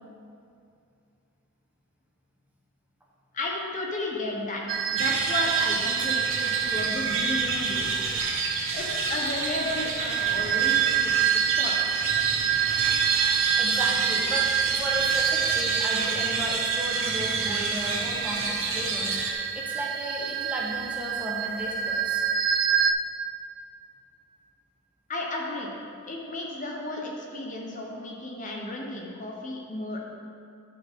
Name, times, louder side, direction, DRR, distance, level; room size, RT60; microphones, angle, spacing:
voice 1, 3.3-4.6 4.9-8.0 8.7-11.7 25.1-25.7 26.1-30.0, left 2 dB, 35° left, -1 dB, 0.8 m, -33 dB
sound 1, 4.7-22.9, right 8 dB, 40° right, 0.3 m, -27 dB
sound 2, 5.0-19.3, right 3 dB, 60° right, 1.0 m, -30 dB
voice 2, 12.5-13.0 13.6-14.5 14.7-22.2, equal, 5° right, -4 dB, 0.8 m, -35 dB
11.5 x 4.9 x 3.6 m, 2.5 s
head